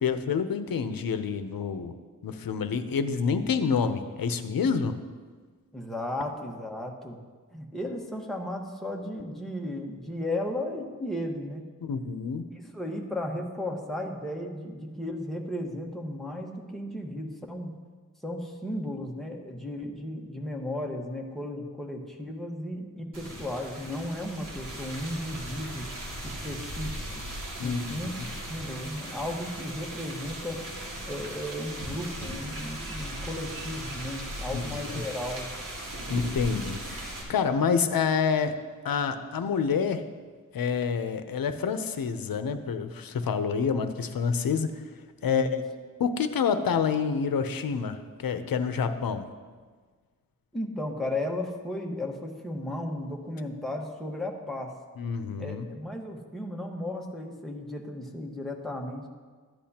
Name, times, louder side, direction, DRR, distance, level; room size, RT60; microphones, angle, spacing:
voice 1, 0.0-1.9 2.2-4.9 11.8-12.4 27.6-28.1 34.5-35.0 36.1-38.5 38.8-40.0 40.5-44.7 45.2-45.5 46.0-49.3 55.0-55.7, left 6 dB, 85° left, 9 dB, 0.7 m, -28 dB
voice 2, 5.7-7.2 7.5-11.6 12.5-17.7 18.2-25.9 26.2-27.2 27.6-28.1 28.5-30.6 31.1-35.5 45.3-45.6 50.5-54.7 55.4-59.1, left 1 dB, ahead, -1 dB, 1.3 m, -35 dB
sound 1, 23.1-37.2, right 1 dB, 65° right, 2.3 m, -38 dB
13.5 x 10.5 x 2.9 m, 1.5 s
wide cardioid pair, 105°, 34 cm